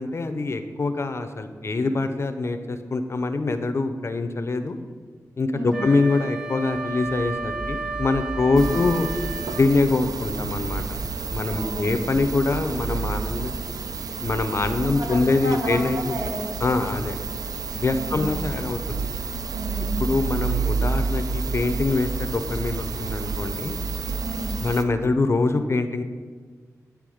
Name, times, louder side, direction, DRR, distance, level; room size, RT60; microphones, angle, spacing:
voice 1, 0.0-4.8 5.4-9.1 9.5-10.8 11.3-13.5 14.2-16.2 16.6-17.1 17.7-19.1 20.0-23.8 24.6-26.0, left 3 dB, 45° left, 9 dB, 0.5 m, -24 dB
voice 2, 5.5-5.8 8.6-8.8 11.5-12.0 14.8-16.9 17.9-18.3 19.5-20.0 24.2-24.5, right 1 dB, 60° right, 1 dB, 1.1 m, -32 dB
Wind instrument woodwind instrument, 5.7-9.7, right 3 dB, 10° right, 0.7 m, -33 dB
sound 1, 6.6-15.3, right 1 dB, 35° right, 1.3 m, -40 dB
sound 2, 8.6-24.8, right 5 dB, 75° right, 0.3 m, -30 dB
9.3 x 3.4 x 4.9 m, 1.5 s
wide cardioid pair, 105°, 6 cm